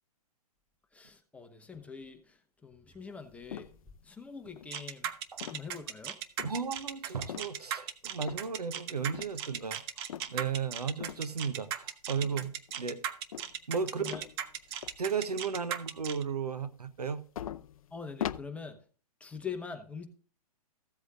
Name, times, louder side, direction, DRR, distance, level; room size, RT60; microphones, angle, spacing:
voice 1, 0.9-3.7 4.0-5.1 5.5-6.2 14.0-14.2 17.9-18.8 19.2-20.1, left 5 dB, 5° left, 1.1 m, -43 dB
sound 1, 3.5-4.0 4.5-5.0 5.4-5.8 6.4-6.6 7.3-7.7 8.2-8.7 9.1-9.4 10.1-10.4 11.0-11.3 12.2-12.7 13.3-13.8 14.1-15.1 15.5-15.6 17.0-17.1 17.4-18.4, left 10 dB, 65° left, 0.5 m, -41 dB
sound 2, 4.7-16.2, right 10 dB, 40° right, 0.9 m, -37 dB
voice 2, 6.4-9.8 10.3-13.0 13.7-14.3 15.0-17.2, right 6 dB, 85° right, 1.0 m, -34 dB
15.0 x 7.9 x 2.5 m
figure-of-eight pair, 120°, 20 cm